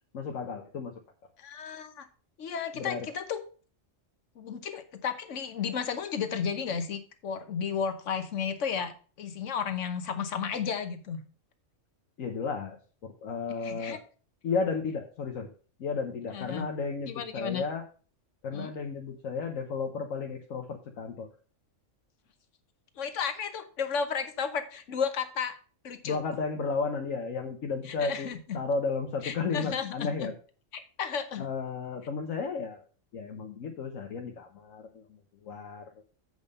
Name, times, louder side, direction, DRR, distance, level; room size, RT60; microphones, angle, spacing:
voice 1, 0.1-0.9 2.7-3.1 12.2-12.8 13.0-14.0 14.4-15.5 15.8-17.8 18.4-21.3 26.0-28.3 28.5-30.3 31.4-32.8 33.1-35.0 35.4-35.9, left 4 dB, 90° left, 3 dB, 1.3 m, -33 dB
voice 2, 1.4-2.1 2.4-3.4 4.4-11.2 13.6-14.0 16.3-16.7 17.1-17.6 18.5-18.7 23.0-25.6 25.8-26.2 28.0-28.6 29.2-30.3 30.7-31.5, left 6 dB, 70° left, 9 dB, 1.3 m, -33 dB
8.0 x 5.3 x 5.3 m, 0.39 s
omnidirectional pair, 1.3 m